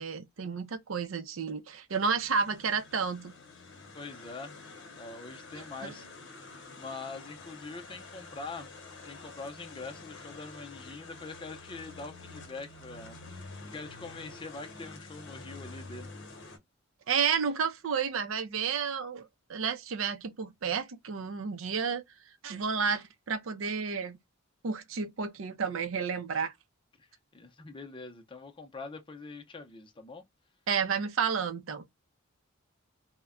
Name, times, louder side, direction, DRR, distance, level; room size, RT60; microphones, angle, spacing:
voice 1, 0.0-3.3 5.5-5.9 17.1-22.0 22.4-24.2 24.6-26.5 30.7-31.9, right 6 dB, 70° right, 0.5 m, -31 dB
sound 1, 1.9-16.6, left 3 dB, 60° left, 0.8 m, -48 dB
voice 2, 3.9-4.6 4.9-6.1 6.7-8.7 9.1-13.2 13.6-16.1 27.0-27.1 27.3-30.2, left 3 dB, 25° left, 0.6 m, -44 dB
2.2 x 2.1 x 3.5 m
head